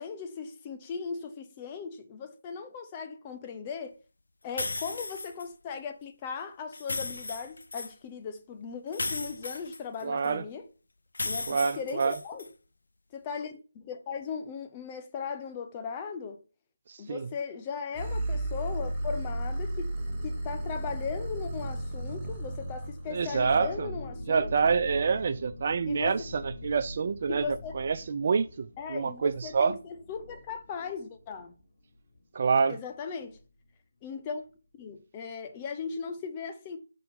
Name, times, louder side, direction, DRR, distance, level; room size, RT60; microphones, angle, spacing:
voice 1, 0.0-4.0 4.4-10.7 11.2-12.5 13.1-16.4 17.0-20.0 20.2-24.5 25.9-26.2 27.3-27.7 28.8-31.5 32.7-33.4 34.0-34.4 34.8-36.8, left 6 dB, 20° left, 0.8 m, -38 dB
sound 1, 4.6-5.5 6.7-7.9 8.9-10.3 11.1-12.5, left 3 dB, 70° left, 0.5 m, -35 dB
voice 2, 10.0-10.4 11.5-12.1 16.9-17.3 23.1-23.9 24.3-29.8 32.3-32.8, right 5 dB, 45° right, 0.4 m, -27 dB
sound 2, 17.9-23.2, right 1 dB, 10° right, 1.4 m, -33 dB
sound 3, 23.0-32.5 32.7-32.8 33.2-33.4, left 1 dB, 45° left, 2.5 m, -43 dB
5.6 x 3.8 x 5.4 m
figure-of-eight pair, 160°, 0 cm